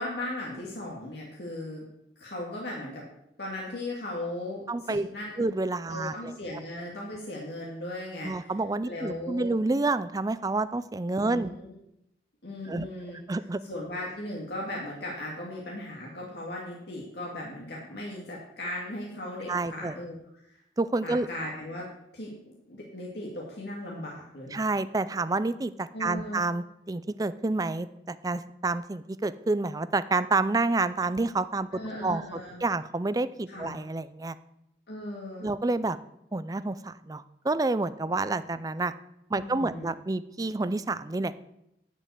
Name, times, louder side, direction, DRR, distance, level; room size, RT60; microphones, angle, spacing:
voice 1, 0.0-1.8 2.2-3.0 3.4-5.5 5.9-8.5 8.8-9.5 11.2-11.7 12.4-13.2 13.6-20.2 20.5-20.6 21.0-21.8 22.1-24.6 25.9-26.4 31.7-32.6 33.5-33.8 34.9-35.5 39.4-39.9, left 1 dB, 70° left, -3 dB, 2.0 m, -37 dB
voice 2, 4.7-5.1 5.4-6.3 8.2-11.5 12.7-12.9 13.3-13.6 19.5-19.9 20.8-21.3 24.5-31.7 32.0-34.4 35.4-36.0 36.3-38.9 39.3-41.5, right 3 dB, 20° right, 14 dB, 0.4 m, -29 dB
10.5 x 5.4 x 8.1 m, 0.82 s
head